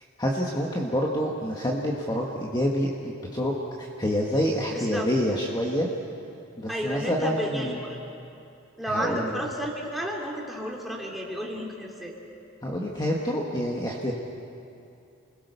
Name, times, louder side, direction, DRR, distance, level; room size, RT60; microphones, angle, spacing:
voice 1, 0.2-2.9 3.3-5.9 6.6-7.8 8.9-9.4 12.6-14.1, equal, 20° left, -2 dB, 1.7 m, -27 dB
voice 2, 4.7-5.0 6.7-8.0 8.8-12.1, equal, ahead, -2 dB, 3.2 m, -32 dB
29.5 x 21.5 x 6.9 m, 2.6 s
head